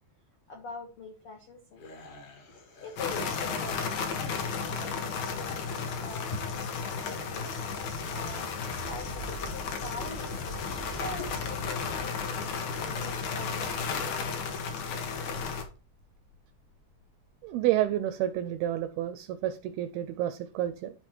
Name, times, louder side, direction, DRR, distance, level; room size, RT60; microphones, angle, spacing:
voice 1, 0.5-1.8 2.5-7.6 8.1-13.8, left 4 dB, 85° left, 2 dB, 1.2 m, -44 dB
sound 1, 1.8-9.0, left 2 dB, 50° left, 1.8 m, -53 dB
sound 2, 3.0-15.6, left 5 dB, 65° left, 1.8 m, -34 dB
sound 3, 8.8-17.6 18.3-18.4, right 1 dB, 30° left, 0.9 m, -46 dB
voice 2, 17.4-20.9, right 12 dB, 85° right, 12 dB, 2.2 m, -29 dB
11.5 x 4.2 x 4.4 m, 0.34 s
omnidirectional pair, 4.9 m